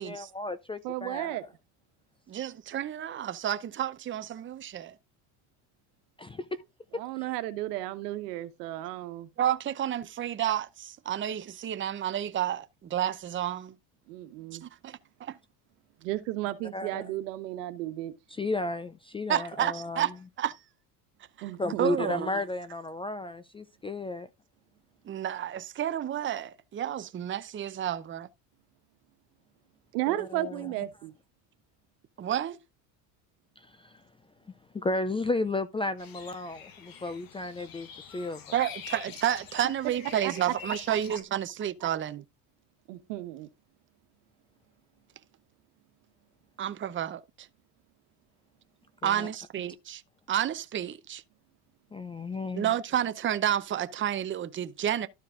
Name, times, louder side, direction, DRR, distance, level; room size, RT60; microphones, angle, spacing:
voice 1, 0.0-1.4 6.2-6.4 16.7-17.0 18.3-20.0 21.6-24.3 30.1-30.7 34.7-37.9 38.1-38.4 49.0-49.3 51.9-52.7, left 2 dB, 15° left, 0.4 m, -33 dB
voice 2, 0.8-1.4 6.9-9.3 14.1-14.6 16.0-18.1 21.4-21.9 29.9-31.1 40.2-40.5 40.9-41.0 42.9-43.5, right 15 dB, 85° right, 1.3 m, -34 dB
voice 3, 2.3-4.9 9.4-13.7 14.6-15.4 19.3-20.1 20.4-20.6 21.4-21.5 21.8-22.3 25.1-28.3 32.2-32.6 38.5-42.2 46.6-47.2 49.0-50.0 50.3-51.2 52.5-55.1, right 10 dB, 25° right, 0.7 m, -30 dB
sound 1, 36.0-41.2, left 6 dB, 45° left, 1.7 m, -45 dB
12.5 x 4.6 x 3.7 m
supercardioid pair, 110°, 47 cm